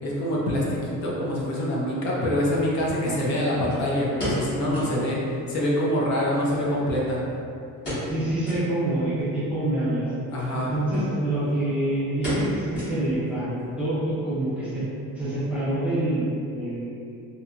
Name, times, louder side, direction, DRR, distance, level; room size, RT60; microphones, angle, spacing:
voice 1, 0.0-7.2 10.3-10.7, equal, 55° left, -4 dB, 0.6 m, -25 dB
sound 1, 3.7-5.0 5.3-5.4 5.7-5.8 6.5-7.3 7.8-8.2 8.4-8.7 9.2-9.3 10.3-10.5 10.9-11.0 11.3-11.7 12.2-13.3 13.6-13.7 14.3-14.6 14.9-15.0, equal, 30° left, 1.1 m, -32 dB
voice 2, 8.0-10.1 10.5-14.8 15.1-17.2, right 1 dB, 5° right, -12 dB, 0.4 m, -27 dB
2.7 x 2.6 x 2.3 m, 2.5 s
cardioid pair, 180°, 35 cm